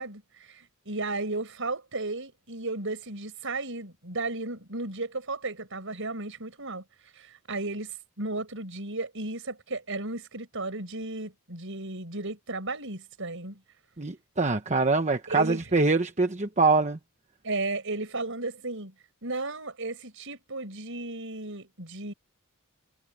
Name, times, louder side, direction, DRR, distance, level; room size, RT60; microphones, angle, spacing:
voice 1, 0.0-6.8 7.1-13.6 15.3-15.6 17.4-18.9 19.2-22.1, right 2 dB, 60° right, 7.0 m, -34 dB
voice 2, 14.0-17.0, right 3 dB, 35° right, 1.1 m, -24 dB
head